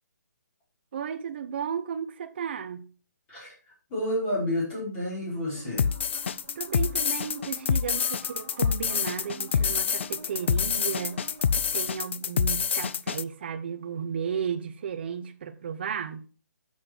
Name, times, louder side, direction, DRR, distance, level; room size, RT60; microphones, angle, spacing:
voice 1, 0.9-2.9 6.6-11.2 11.5-16.3, right 7 dB, 35° right, 0.9 m, -34 dB
voice 2, 3.3-5.9, left 1 dB, 15° left, 5.4 m, -30 dB
sound 1, 5.6-11.9, right 4 dB, 20° right, 2.2 m, -48 dB
sound 2, 5.8-13.2, left 7 dB, 40° left, 0.4 m, -27 dB
9.6 x 7.3 x 4.5 m
hypercardioid pair, 175°, 10 cm